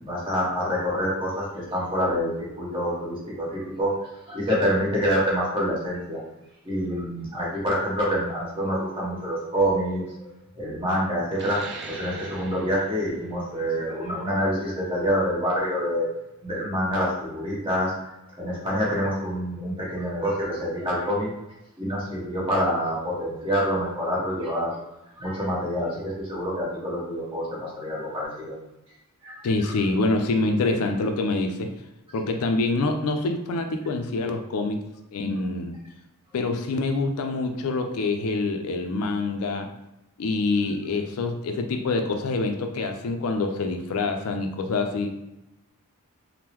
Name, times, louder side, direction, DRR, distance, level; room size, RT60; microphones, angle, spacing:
voice 1, 0.0-6.2 6.6-10.3 10.5-16.1 16.4-17.9 18.4-21.3 21.8-24.8 25.2-28.6 29.2-29.4, equal, 25° right, -6 dB, 1.1 m, -27 dB
sound 1, 11.3-16.5, right 3 dB, 55° right, 0.5 m, -43 dB
voice 2, 29.4-31.7 32.1-35.7 36.3-39.7 40.2-45.1, left 3 dB, 70° left, 6 dB, 0.4 m, -26 dB
3.5 x 2.1 x 2.9 m, 0.93 s
head